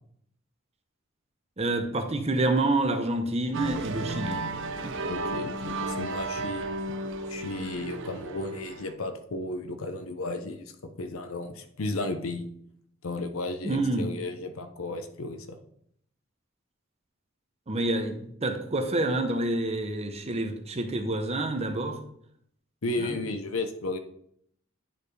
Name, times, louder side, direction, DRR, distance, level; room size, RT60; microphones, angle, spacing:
voice 1, 1.6-4.5 4.8-4.9 13.6-14.1 17.7-22.0 23.0-23.2, right 2 dB, 30° right, 6 dB, 0.8 m, -28 dB
sound 1, 3.5-8.9, right 2 dB, 65° right, 0.6 m, -33 dB
voice 2, 5.1-6.7 7.3-10.7 11.0-12.5 13.0-15.5 22.8-24.0, left 2 dB, 85° left, 7 dB, 0.7 m, -34 dB
10.0 x 4.5 x 3.3 m, 0.69 s
head